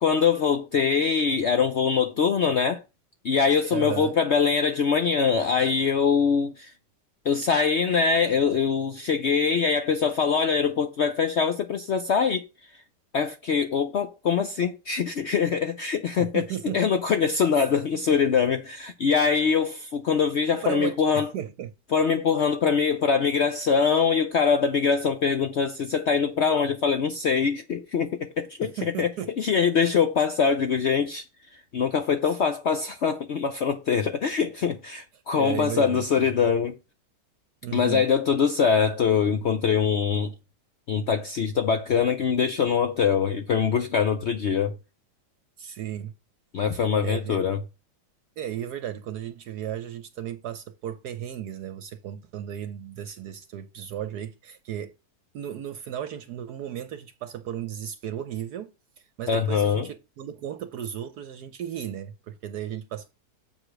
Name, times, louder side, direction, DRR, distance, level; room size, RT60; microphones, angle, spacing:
voice 1, 0.0-2.8 3.2-6.7 7.3-12.4 13.1-16.5 16.7-21.3 21.9-29.1 29.4-31.2 31.5-36.7 37.7-40.3 40.9-44.8 46.5-47.6 59.3-59.9, left 6 dB, 65° left, 0.7 m, -23 dB
voice 2, 3.7-4.1 16.2-16.8 17.5-17.7 20.5-21.7 28.6-29.3 32.2-32.4 35.3-36.3 37.6-38.0 45.6-46.1 46.7-47.5 48.4-54.9 55.3-58.7 59.0-63.1, right 10 dB, 70° right, 1.2 m, -35 dB
7.6 x 4.9 x 5.9 m
omnidirectional pair, 1.8 m